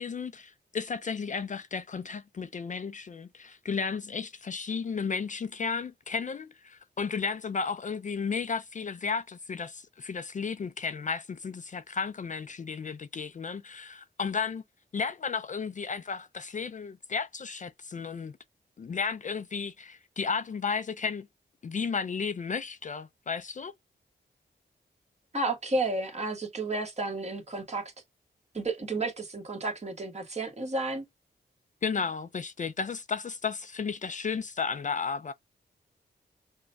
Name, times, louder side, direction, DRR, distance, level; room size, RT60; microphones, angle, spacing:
voice 1, 0.0-14.6 14.9-18.4 18.8-21.3 21.6-23.7 31.8-35.3, left 5 dB, 40° left, 0.4 m, -33 dB
voice 2, 25.3-27.8 28.5-31.0, right 2 dB, 35° right, 1.4 m, -32 dB
6.1 x 2.2 x 2.5 m
wide cardioid pair, 105°, 19 cm